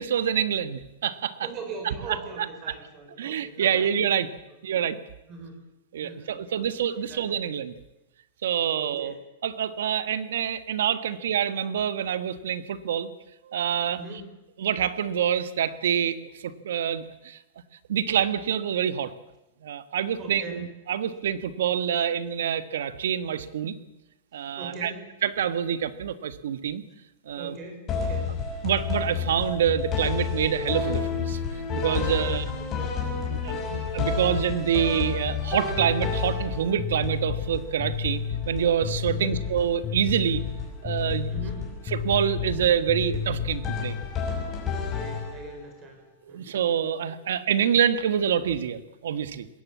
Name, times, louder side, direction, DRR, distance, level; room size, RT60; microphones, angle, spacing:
voice 1, 0.0-1.5 1.8-2.5 3.2-4.3 4.6-5.0 5.9-7.7 8.4-9.1 9.4-13.1 13.4-14.0 14.6-17.4 17.9-19.1 19.6-23.7 24.3-24.9 25.2-26.8 27.2-27.6 28.6-31.4 31.7-32.4 33.3-40.4 40.8-41.3 41.9-43.9 46.3-49.5, right 9 dB, 80° right, 13 dB, 1.5 m, -26 dB
voice 2, 1.4-3.9 5.3-5.6 6.0-7.5 8.7-9.2 13.9-14.2 20.2-20.6 24.6-25.1 27.4-28.3 32.0-32.9 39.1-39.4 41.3-41.8 44.8-46.0 46.3-46.6 47.0-47.2, right 3 dB, 25° right, 4 dB, 5.8 m, -41 dB
sound 1, 27.9-45.7, left 6 dB, 20° left, 6.2 m, -30 dB
20.5 x 16.5 x 8.5 m, 0.95 s
supercardioid pair, 160°, 0 cm